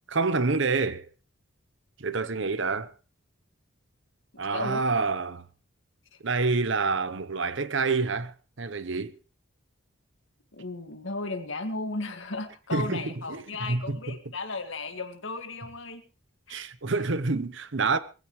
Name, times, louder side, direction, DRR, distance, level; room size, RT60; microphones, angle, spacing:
voice 1, 0.1-1.1 2.0-2.9 4.4-5.4 6.2-9.1 12.7-14.2 16.5-18.0, right 4 dB, 65° right, 0.9 m, -27 dB
voice 2, 4.5-4.9 6.1-6.2 10.5-16.0 16.5-16.6, left 3 dB, 65° left, 2.0 m, -35 dB
21.0 x 15.5 x 3.1 m
head